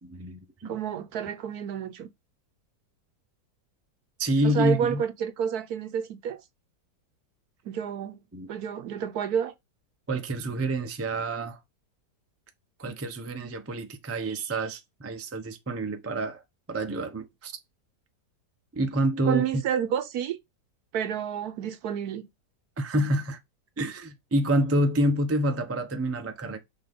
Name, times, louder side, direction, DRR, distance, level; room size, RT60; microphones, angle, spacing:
voice 1, 0.0-0.7 4.2-5.0 8.3-8.5 10.1-11.6 12.8-16.4 16.7-17.5 18.7-19.6 22.8-23.4 23.8-26.6, right 1 dB, 20° right, 0.4 m, -28 dB
voice 2, 0.6-2.1 4.4-6.4 7.7-8.2 8.5-9.5 19.2-20.4 20.9-22.3, right 8 dB, 70° right, 1.1 m, -29 dB
6.2 x 2.9 x 5.2 m
omnidirectional pair, 1.8 m